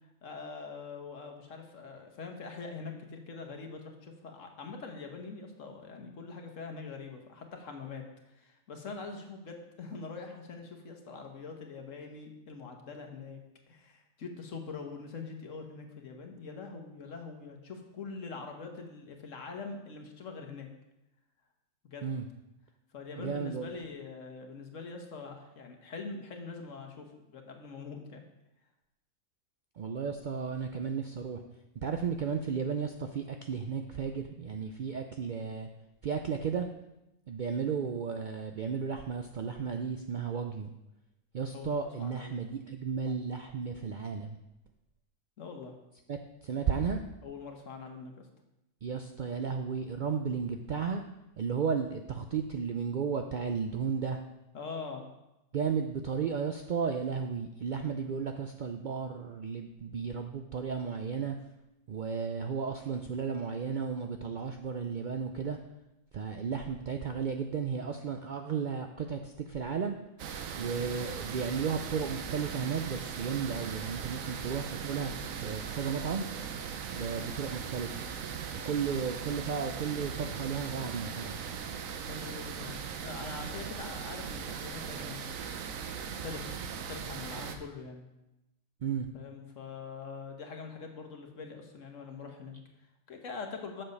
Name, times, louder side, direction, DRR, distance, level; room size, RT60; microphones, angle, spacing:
voice 1, 0.2-13.4 13.7-20.7 21.8-22.1 22.9-28.2 41.5-41.7 42.0-42.4 45.4-45.7 47.2-48.3 54.5-55.1 82.0-85.2 86.1-86.6 86.9-88.1 89.1-93.8, left 4 dB, 70° left, 3 dB, 1.5 m, -43 dB
voice 2, 23.2-23.7 29.8-31.4 31.8-35.7 36.0-36.7 37.3-40.7 41.3-44.4 46.1-47.0 48.8-51.0 51.4-54.2 55.5-61.4 61.9-65.6 66.1-70.0 70.6-75.1 75.4-76.2 76.9-78.1 78.6-81.4 88.8-89.1, right 6 dB, 65° right, 5 dB, 0.5 m, -34 dB
sound 1, 70.2-87.6, right 7 dB, 85° right, 1.2 m, -39 dB
7.6 x 6.8 x 5.3 m, 0.93 s
omnidirectional pair, 1.4 m